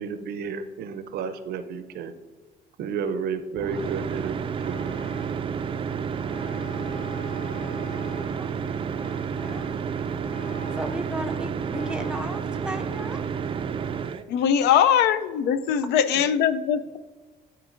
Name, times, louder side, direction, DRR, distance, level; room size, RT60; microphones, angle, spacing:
voice 1, 0.0-2.1 2.8-4.4 4.6-4.9, right 6 dB, 70° right, 11 dB, 0.6 m, -31 dB
sound 1, 3.5-14.2, right 6 dB, 30° right, 0.4 m, -30 dB
Vehicle horn car horn honking, 4.6-5.5 6.3-8.4 9.0-9.8 10.2-11.1 11.7-12.3, left 2 dB, 60° left, 2.1 m, -44 dB
voice 2, 8.4-8.8 9.4-9.7 10.4-13.2 15.8-15.9, right 1 dB, 5° right, 6 dB, 0.7 m, -35 dB
voice 3, 14.3-17.0, left 8 dB, 80° left, 13 dB, 0.4 m, -21 dB
12.0 x 4.5 x 2.5 m, 1.4 s
cardioid pair, 110°, 17 cm